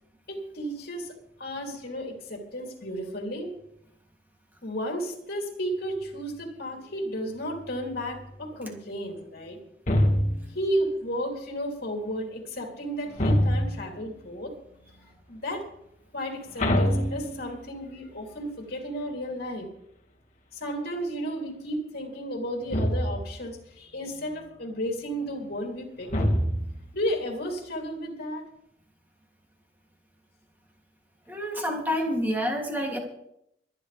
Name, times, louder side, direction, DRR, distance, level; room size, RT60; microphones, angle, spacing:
voice 1, 0.3-1.1 1.4-3.5 4.6-9.6 10.5-15.6 16.1-19.7 20.5-26.1 26.9-28.4, equal, 60° left, 2 dB, 3.2 m, -33 dB
sound 1, 9.9-10.6 13.2-14.0 16.6-17.8 22.7-23.4 26.1-26.9, equal, 40° left, 2.0 m, -25 dB
voice 2, 31.3-33.0, equal, 10° right, 0 dB, 2.8 m, -28 dB
25.0 x 9.6 x 3.5 m, 0.76 s
head